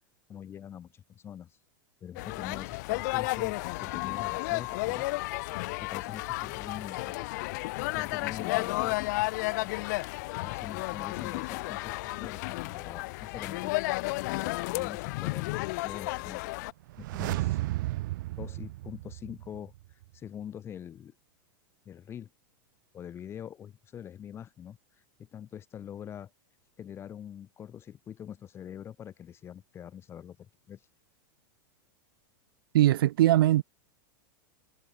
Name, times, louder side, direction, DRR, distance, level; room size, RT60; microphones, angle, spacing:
voice 1, 0.3-1.6 2.0-5.1 5.8-7.3 7.8-9.0 10.4-13.8 14.3-16.4 17.0-17.6 18.4-21.2 21.8-22.3 22.9-26.3 26.8-30.9, left 9 dB, 20° left, 2.6 m, -44 dB
sound 1, 2.2-16.7, left 22 dB, 55° left, 0.6 m, -32 dB
sound 2, 16.8-19.8 20.0-20.1, right 18 dB, 65° right, 0.9 m, -33 dB
voice 2, 32.7-33.6, right 14 dB, 90° right, 0.5 m, -21 dB
supercardioid pair, 155°, 12 cm